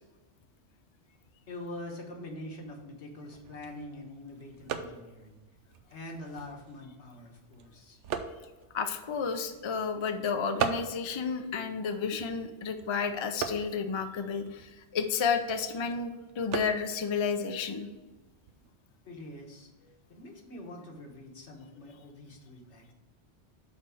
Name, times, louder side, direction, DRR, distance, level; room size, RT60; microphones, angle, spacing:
voice 1, 1.5-5.4 5.9-8.0 19.0-19.7 20.1-22.9, left 1 dB, 75° left, 1 dB, 1.5 m, -44 dB
sound 1, 3.2-18.7, right 7 dB, 90° right, 0.9 m, -41 dB
voice 2, 8.7-17.9, left 5 dB, 40° left, 7 dB, 0.4 m, -31 dB
5.8 x 4.4 x 6.2 m, 1.1 s
omnidirectional pair, 1.2 m